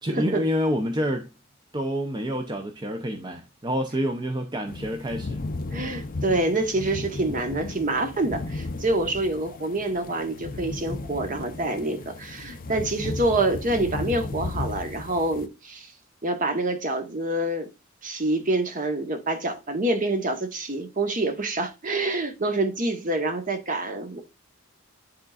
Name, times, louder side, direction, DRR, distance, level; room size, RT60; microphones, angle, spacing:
voice 1, 0.0-1.3 1.7-5.4, equal, 20° right, 0.6 m, -28 dB
sound 1, 4.7-15.5, left 2 dB, 45° left, 0.5 m, -35 dB
voice 2, 5.7-15.9 16.2-17.7 18.0-24.2, right 2 dB, 40° right, 1.2 m, -26 dB
10.5 x 3.7 x 2.4 m
head